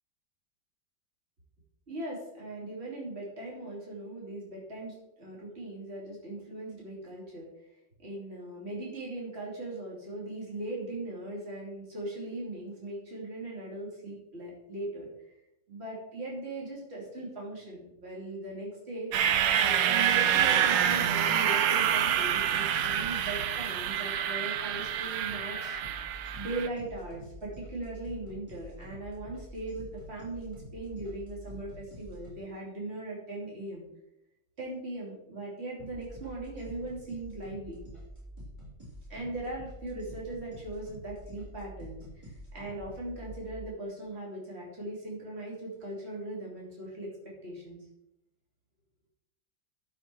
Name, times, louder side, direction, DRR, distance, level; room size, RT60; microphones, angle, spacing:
voice 1, 1.9-7.5 8.0-15.1 15.7-26.1 26.4-33.9 34.6-37.8 39.1-47.8, right 2 dB, 35° right, -4 dB, 3.0 m, -39 dB
sound 1, 19.1-26.7, right 9 dB, 80° right, 1.4 m, -27 dB
sound 2, 25.7-32.4 35.8-43.6, equal, 15° right, 3.5 m, -47 dB
12.0 x 5.7 x 4.6 m, 0.85 s
omnidirectional pair, 2.0 m